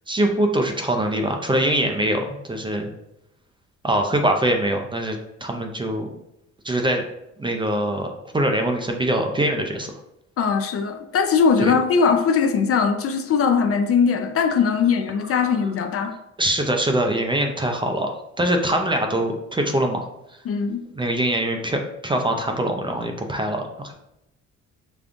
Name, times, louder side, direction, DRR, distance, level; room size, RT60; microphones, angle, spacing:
voice 1, 0.1-2.9 3.8-6.2 6.6-7.0 7.4-8.1 8.3-9.9 11.6-11.7 16.4-18.1 18.4-20.1 20.9-23.9, right 1 dB, 15° right, 3 dB, 0.4 m, -23 dB
voice 2, 10.4-16.1 20.5-20.8, left 6 dB, 50° left, 7 dB, 0.4 m, -20 dB
5.1 x 2.3 x 2.5 m, 0.84 s
cardioid pair, 90°, 30 cm